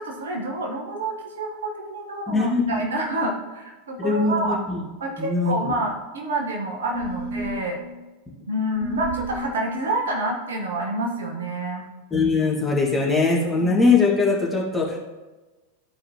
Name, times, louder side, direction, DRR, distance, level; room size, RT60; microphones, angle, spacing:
voice 1, 0.0-4.6 5.0-7.8 8.5-11.8, right 1 dB, 65° right, 1 dB, 1.3 m, -28 dB
voice 2, 2.3-2.9 4.0-4.8 5.2-5.7 12.1-15.0, left 3 dB, 5° left, -4 dB, 1.9 m, -21 dB
sound 1, 6.9-7.7 8.8-9.5, right 2 dB, 25° right, 1.8 m, -31 dB
13.5 x 4.8 x 3.0 m, 1.2 s
figure-of-eight pair, 90°, 0 cm